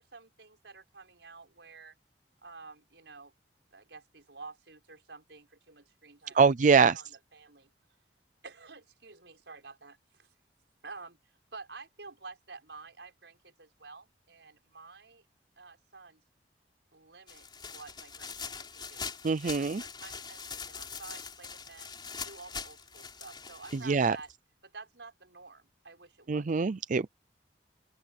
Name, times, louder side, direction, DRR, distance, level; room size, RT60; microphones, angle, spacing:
voice 1, 0.0-2.0 2.4-3.3 3.7-7.7 8.4-10.3 10.8-11.2 11.5-15.2 15.6-16.2 16.9-21.9 22.2-24.3 24.6-26.5, right 4 dB, 85° right, 5.5 m, -50 dB
voice 2, 6.3-7.0 19.2-19.8 23.7-24.2 26.3-27.1, right 5 dB, 45° right, 0.5 m, -24 dB
sound 1, 17.3-24.3, left 5 dB, 25° left, 3.8 m, -43 dB
open air
head